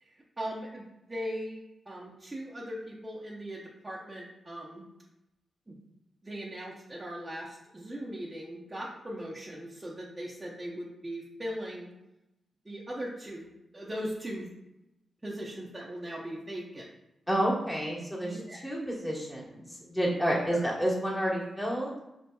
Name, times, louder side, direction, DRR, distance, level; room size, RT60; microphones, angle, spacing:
voice 1, 0.0-4.8 5.7-5.8 6.2-11.9 12.6-14.5 15.2-16.9 18.2-18.6 20.5-20.6, equal, 20° right, -6 dB, 0.6 m, -39 dB
voice 2, 17.3-21.9, equal, 10° left, -5 dB, 1.1 m, -30 dB
4.3 x 2.7 x 2.2 m, 0.91 s
cardioid pair, 80°, 0 cm